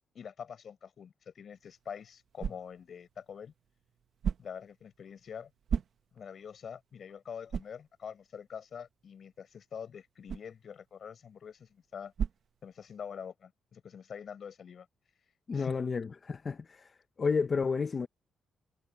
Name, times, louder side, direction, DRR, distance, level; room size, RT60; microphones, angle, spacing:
voice 1, 0.1-3.5 4.4-5.5 6.1-12.1 12.6-14.9 15.5-15.8, left 7 dB, 50° left, 6.0 m, -45 dB
sound 1, 1.5-13.3, right 7 dB, 55° right, 0.8 m, -41 dB
voice 2, 15.5-16.9 17.2-18.1, left 5 dB, 30° left, 0.7 m, -31 dB
cardioid pair, 145°, 0 cm